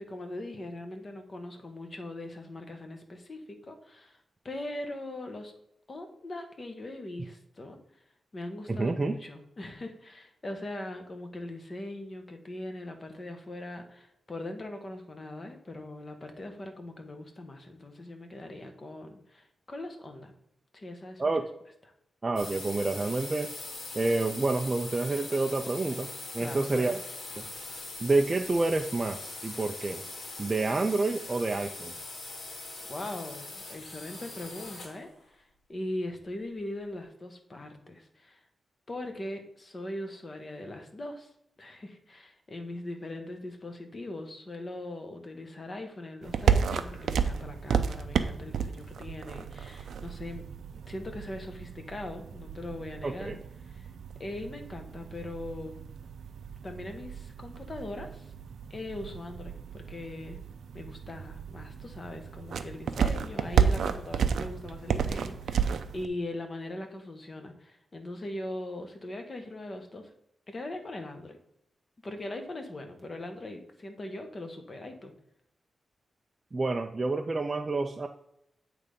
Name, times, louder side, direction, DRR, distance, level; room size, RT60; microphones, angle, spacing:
voice 1, 0.0-4.2 4.4-5.5 5.9-7.8 8.3-20.3 20.7-21.4 26.4-27.0 32.9-35.4 35.7-38.4 38.9-41.3 41.6-50.4 50.9-53.4 53.7-53.9 54.2-55.8 56.6-58.3 58.7-60.4 60.7-70.1 70.5-71.4 72.0-75.1, left 1 dB, 30° left, 5 dB, 0.9 m, -40 dB
voice 2, 8.7-9.2 21.2-21.5 22.2-23.5 23.9-26.9 27.4-27.5 28.0-30.0 30.4-31.9 53.0-53.4 76.5-78.1, right 3 dB, 25° right, 4 dB, 0.4 m, -28 dB
sound 1, 22.4-35.0, left 2 dB, 75° left, 1.9 m, -41 dB
sound 2, 46.2-66.1, right 7 dB, 85° right, 0.5 m, -32 dB
8.2 x 3.3 x 5.2 m, 0.79 s
wide cardioid pair, 160°, 0 cm